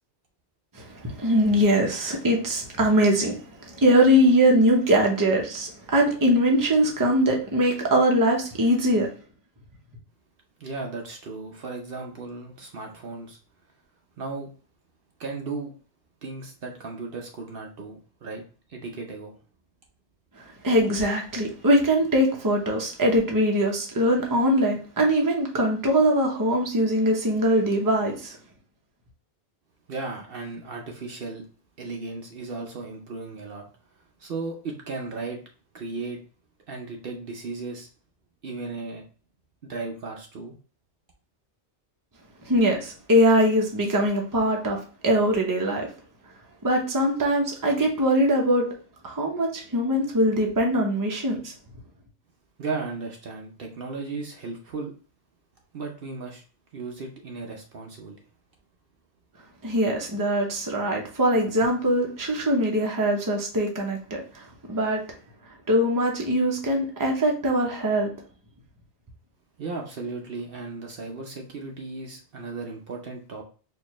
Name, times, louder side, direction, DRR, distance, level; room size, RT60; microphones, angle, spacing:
voice 1, 0.9-3.4 3.7-9.1 20.6-28.4 42.5-44.8 45.0-45.9 46.6-48.6 49.0-51.5 59.6-64.4 64.7-65.0 65.7-68.1, equal, 20° right, 0.8 m, -22 dB
voice 2, 10.6-13.4 14.2-14.5 15.2-15.7 16.2-18.4 18.7-19.4 29.9-31.5 31.8-33.7 34.2-35.4 35.7-36.2 36.7-37.9 38.4-39.0 39.6-40.5 52.6-54.9 55.7-56.4 56.7-58.2 69.6-73.4, right 3 dB, 60° right, 0.9 m, -35 dB
4.4 x 2.6 x 3.0 m
omnidirectional pair, 1.1 m